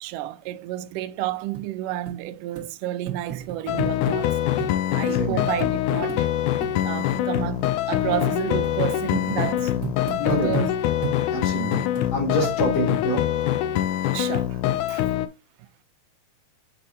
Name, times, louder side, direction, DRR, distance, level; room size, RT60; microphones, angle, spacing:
voice 1, 0.0-6.3 6.6-9.8 10.1-10.7 14.1-15.0, right 14 dB, 80° right, 2.1 m, -31 dB
sound 1, 1.5-1.7 2.1-2.2 2.6-2.7 3.1-4.2 4.6-4.8 5.1-5.2 5.6-5.7 6.1-6.2 6.6-6.8 7.1-7.2 7.6-7.7 8.1-8.3 8.6-8.8 9.1-10.7 11.0-11.2 11.7-12.1 12.4-12.9 13.4-13.5, right 11 dB, 60° right, 0.8 m, -34 dB
sound 2, 3.7-15.3, left 12 dB, 80° left, 1.8 m, -24 dB
voice 2, 5.1-5.5 10.2-10.6 11.3-11.9 12.1-13.2, equal, 55° left, 3.8 m, -27 dB
7.7 x 5.2 x 2.6 m
omnidirectional pair, 3.9 m